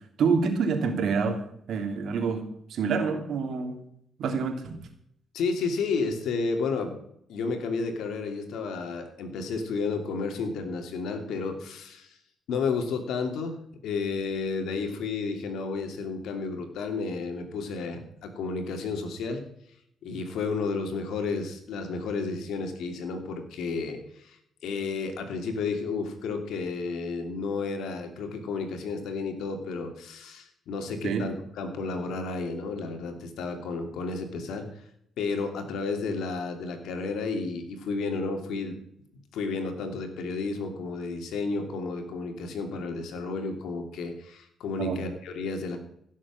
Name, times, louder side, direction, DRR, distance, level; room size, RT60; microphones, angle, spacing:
voice 1, 0.2-1.4 1.7-3.8 4.2-4.7 31.0-31.2 44.8-45.0, right 5 dB, 70° right, 5 dB, 3.0 m, -27 dB
voice 2, 5.3-7.0 7.3-12.2 12.5-19.4 20.0-24.4 24.6-34.7 35.2-38.8 39.3-45.8, left 4 dB, 80° left, 6 dB, 2.8 m, -32 dB
16.5 x 7.5 x 7.5 m, 0.72 s
cardioid pair, 90°, 0 cm